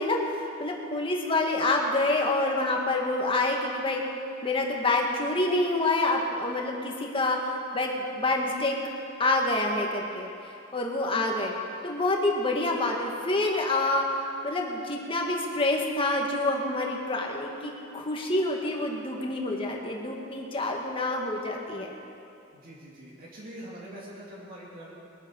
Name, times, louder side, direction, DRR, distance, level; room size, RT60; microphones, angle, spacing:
voice 1, 0.0-4.0 4.4-8.8 9.2-10.3 10.7-11.5 11.8-21.9, left 2 dB, 25° left, 0 dB, 1.8 m, -27 dB
voice 2, 22.5-24.9, right 1 dB, 45° right, -5 dB, 2.6 m, -44 dB
21.5 x 9.3 x 6.5 m, 2.6 s
head